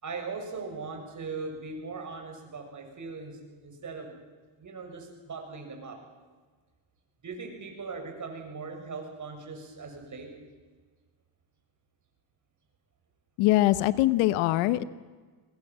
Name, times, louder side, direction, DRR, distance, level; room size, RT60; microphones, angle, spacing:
voice 1, 0.0-4.1 4.6-6.0 7.2-10.3, right 4 dB, 40° right, 3 dB, 6.9 m, -39 dB
voice 2, 13.4-14.8, left 16 dB, 90° left, 15 dB, 1.1 m, -23 dB
23.5 x 20.5 x 7.6 m, 1.4 s
cardioid pair, 95°, 48 cm